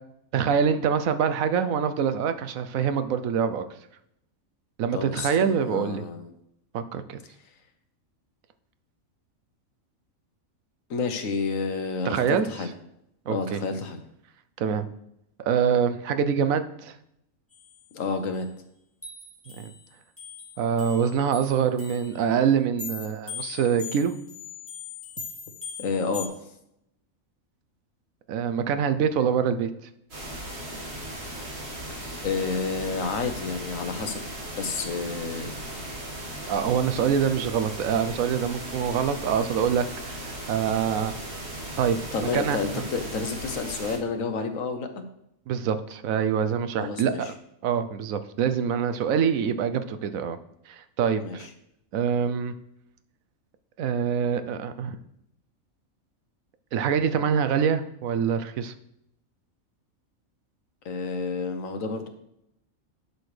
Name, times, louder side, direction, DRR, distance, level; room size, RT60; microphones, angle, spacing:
voice 1, 0.3-3.7 4.8-6.0 6.7-7.2 12.0-12.5 13.3-13.6 14.6-14.9 15.5-16.9 19.6-19.7 20.6-24.1 28.3-29.7 36.5-41.1 41.8-42.8 45.5-47.3 47.6-50.4 50.7-51.5 51.9-52.5 53.8-55.0 56.7-58.7, right 7 dB, 80° right, 11 dB, 1.1 m, -25 dB
voice 2, 4.9-6.3 10.9-12.7 13.3-14.0 17.9-18.5 25.8-26.3 32.2-34.3 34.5-35.6 42.1-45.0 46.8-47.3 51.2-51.4 60.8-62.1, left 4 dB, 75° left, 7 dB, 1.3 m, -30 dB
sound 1, 17.5-18.0 18.3-18.4 19.0-22.2 22.8-26.3, left 6 dB, 10° left, 2.6 m, -40 dB
sound 2, 30.1-44.0, right 1 dB, 50° right, 1.9 m, -37 dB
11.5 x 6.6 x 3.3 m, 0.79 s
omnidirectional pair, 1.4 m